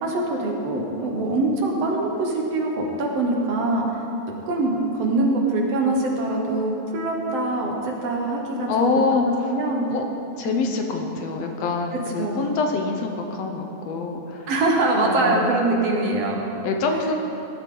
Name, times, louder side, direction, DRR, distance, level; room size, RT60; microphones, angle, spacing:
voice 1, 0.0-4.0 4.5-9.9 10.4-10.7 11.9-12.5 14.5-16.5 16.9-17.1, right 2 dB, 60° right, 0 dB, 2.3 m, -24 dB
voice 2, 8.7-9.5 9.9-10.0 10.4-14.5 15.0-15.6 16.6-17.1, left 4 dB, 70° left, 3 dB, 1.9 m, -25 dB
18.0 x 12.0 x 3.9 m, 3.0 s
omnidirectional pair, 3.3 m